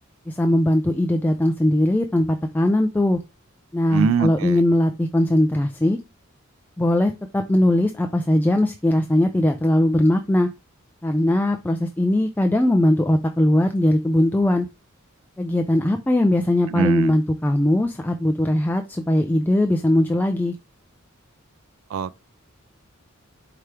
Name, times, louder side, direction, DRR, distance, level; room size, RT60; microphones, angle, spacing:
voice 1, 0.3-3.2 3.7-6.0 6.8-10.5 11.0-14.7 15.4-20.6, left 1 dB, 10° left, 0.3 m, -20 dB
voice 2, 3.9-4.6 16.7-17.2 21.9-22.2, right 6 dB, 70° right, 0.3 m, -23 dB
4.7 x 2.9 x 3.2 m
head